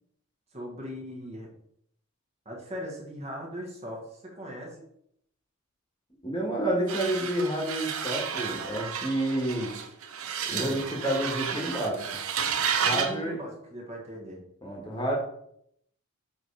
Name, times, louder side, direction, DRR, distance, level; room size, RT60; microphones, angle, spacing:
voice 1, 0.5-1.5 2.4-4.9 10.5-10.8 12.6-14.4, equal, 30° right, -2 dB, 1.5 m, -39 dB
voice 2, 6.2-9.7 10.4-12.2 12.8-13.4 14.6-15.1, right 1 dB, 20° left, -1 dB, 1.7 m, -29 dB
sound 1, 6.9-13.2, right 7 dB, 70° right, 0.8 m, -32 dB
7.2 x 3.7 x 4.8 m, 0.71 s
head